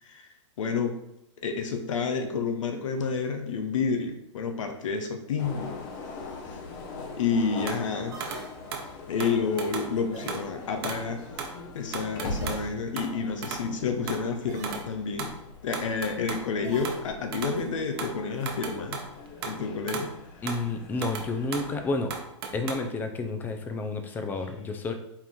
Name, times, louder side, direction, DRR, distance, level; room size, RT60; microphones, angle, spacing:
voice 1, 0.6-1.0 1.4-5.8 6.4-6.6 7.2-8.2 9.1-11.2 11.7-15.3 15.6-19.0 19.5-20.1, left 5 dB, 80° left, 5 dB, 0.7 m, -29 dB
sound 1, 5.4-21.9, left 3 dB, 40° left, 0.7 m, -42 dB
sound 2, 7.7-7.9 8.2-8.5 8.7-8.9 9.2-9.9 10.3-10.5 10.8-11.1 11.4-11.6 11.9-12.7 13.0-13.2 13.4-13.7 14.1-14.3 14.6-14.9 15.2-16.5 16.8-17.6 18.0-19.6 19.9-20.2 20.5-20.7 21.0-21.7 22.1-22.7, right 6 dB, 55° right, 0.8 m, -36 dB
sound 3, 8.1-9.1 10.1-10.9 12.3-13.2 14.5-15.0 16.6-17.5, right 2 dB, 20° right, 0.8 m, -45 dB
voice 2, 20.4-22.1 22.5-24.9, left 3 dB, 10° left, 6 dB, 0.4 m, -30 dB
4.6 x 2.5 x 3.5 m, 0.82 s
hypercardioid pair, 140°, 16 cm